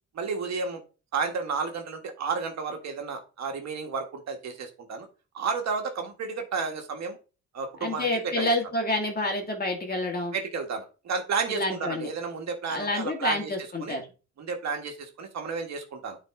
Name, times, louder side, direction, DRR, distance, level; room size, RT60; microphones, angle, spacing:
voice 1, 0.1-0.8 1.1-5.1 5.3-7.2 7.5-8.1 8.4-8.5 10.3-13.5 13.8-14.0 14.4-16.2, right 5 dB, 60° right, 3 dB, 1.7 m, -32 dB
voice 2, 7.8-10.3 11.5-12.1 12.7-14.0, left 1 dB, 30° left, 2 dB, 2.1 m, -28 dB
9.1 x 4.1 x 3.7 m, 0.34 s
cardioid pair, 90°, 30 cm